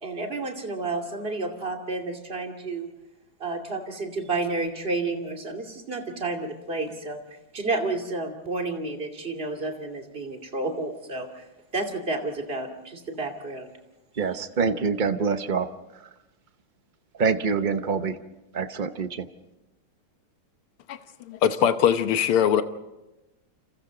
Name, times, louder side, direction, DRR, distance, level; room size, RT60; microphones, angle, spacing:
voice 1, 0.0-2.9 3.4-7.2 7.5-11.4 11.7-13.7, right 3 dB, 25° right, 2 dB, 2.7 m, -31 dB
voice 2, 14.2-15.7 17.2-18.2 18.5-19.3, right 5 dB, 50° right, 9 dB, 0.5 m, -25 dB
voice 3, 21.3-22.6, left 9 dB, 80° left, 9 dB, 2.0 m, -21 dB
29.5 x 27.5 x 4.0 m, 0.99 s
omnidirectional pair, 2.4 m